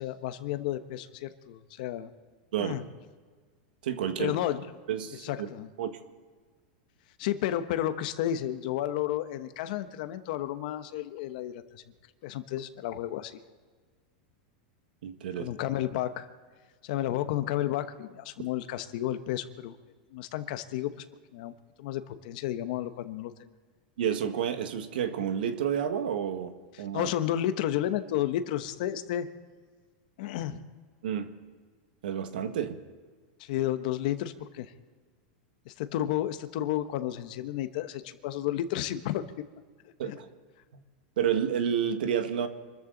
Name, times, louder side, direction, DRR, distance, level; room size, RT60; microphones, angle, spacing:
voice 1, 0.0-2.1 2.6-2.8 4.2-4.6 5.2-5.7 7.2-11.8 12.2-13.3 15.4-16.3 16.8-19.8 20.1-20.9 21.3-21.5 21.8-23.3 26.7-29.3 30.2-30.6 33.4-34.7 35.7-39.2 40.1-40.2, left 12 dB, 60° left, 10 dB, 1.0 m, -32 dB
voice 2, 2.5-2.9 3.8-4.4 4.9-5.5 5.8-6.0 15.0-15.5 24.0-27.1 31.0-31.3 32.0-32.8 40.0-40.3 41.2-42.5, right 8 dB, 85° right, 8 dB, 1.6 m, -30 dB
26.0 x 14.0 x 4.0 m, 1.5 s
supercardioid pair, 140°, 5 cm